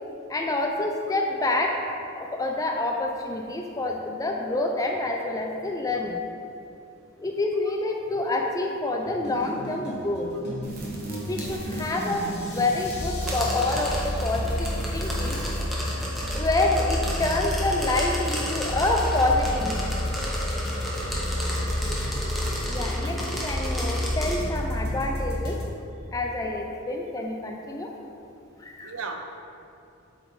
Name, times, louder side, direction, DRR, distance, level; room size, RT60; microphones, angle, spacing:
voice 1, 0.3-1.8 2.2-6.2 7.2-10.3 11.3-15.4 16.3-19.8 22.7-25.6 26.1-27.9 28.6-28.9, left 2 dB, 15° left, 2 dB, 0.3 m, -27 dB
sound 1, 9.1-25.6, left 1 dB, 50° left, 1.0 m, -30 dB
sound 2, 10.6-15.7, right 4 dB, 45° right, 1.0 m, -40 dB
sound 3, 13.2-24.4, equal, ahead, 0.9 m, -33 dB
voice 2, 21.6-22.5 22.8-23.3 28.8-29.2, right 4 dB, 75° right, 4 dB, 0.6 m, -40 dB
7.8 x 4.1 x 3.2 m, 2.6 s
head